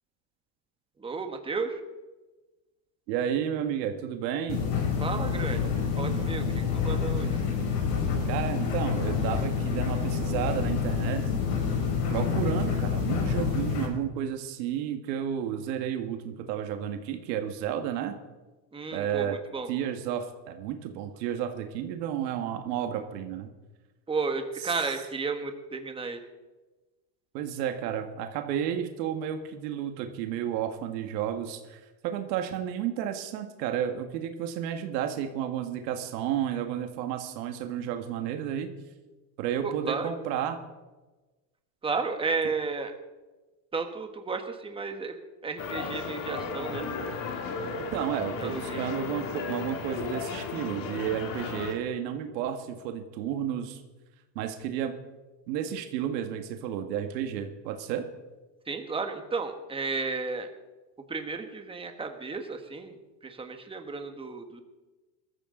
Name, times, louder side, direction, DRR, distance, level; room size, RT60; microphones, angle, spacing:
voice 1, 1.0-1.8 5.0-7.4 18.7-19.7 24.1-26.2 39.6-40.1 41.8-42.9 43.7-45.2 45.4-46.9 48.4-48.9 58.7-60.5 61.1-63.0 63.2-64.6, right 4 dB, 10° right, 6 dB, 1.3 m, -33 dB
voice 2, 3.1-4.6 8.3-11.4 12.1-18.1 18.9-19.4 19.7-23.5 24.6-24.7 27.3-38.8 39.4-40.6 47.8-53.8 54.4-54.9 55.5-58.0, right 9 dB, 85° right, 5 dB, 1.8 m, -32 dB
sound 1, 4.5-13.9, left 6 dB, 70° left, 5.4 m, -28 dB
sound 2, 45.6-51.7, left 5 dB, 40° left, 2.0 m, -35 dB
21.0 x 14.0 x 3.9 m, 1.2 s
cardioid pair, 155°, 49 cm